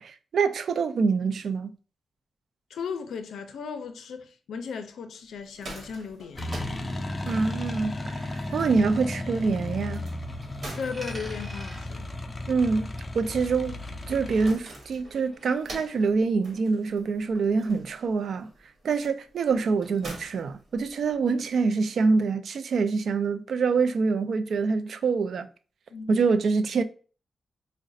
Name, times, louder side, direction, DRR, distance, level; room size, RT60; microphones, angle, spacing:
voice 1, 0.0-1.7 7.3-10.0 12.5-12.9 13.1-13.7 14.1-18.5 18.8-25.5 26.1-26.8, right 4 dB, 70° right, 0.3 m, -25 dB
voice 2, 2.7-6.7 10.8-12.1 25.9-26.3, left 6 dB, 90° left, 0.4 m, -36 dB
sound 1, 5.3-21.3, right 2 dB, 50° right, 1.2 m, -47 dB
sound 2, 6.4-14.5, left 1 dB, 25° left, 0.4 m, -34 dB
Coin (dropping), 10.8-13.6 13.8-15.8, equal, 20° right, 1.6 m, -47 dB
4.8 x 2.1 x 2.6 m
cardioid pair, 100°, 0 cm